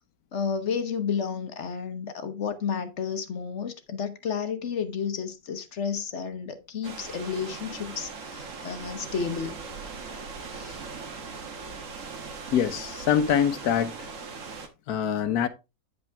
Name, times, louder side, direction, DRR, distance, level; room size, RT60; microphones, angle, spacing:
voice 1, 0.3-9.5 10.5-10.8, left 6 dB, 55° left, 1.1 m, -31 dB
sound 1, 6.8-14.7, right 4 dB, 60° right, 1.5 m, -39 dB
voice 2, 12.5-13.9 14.9-15.5, left 8 dB, 85° left, 1.4 m, -24 dB
9.3 x 5.3 x 3.4 m
omnidirectional pair, 1.6 m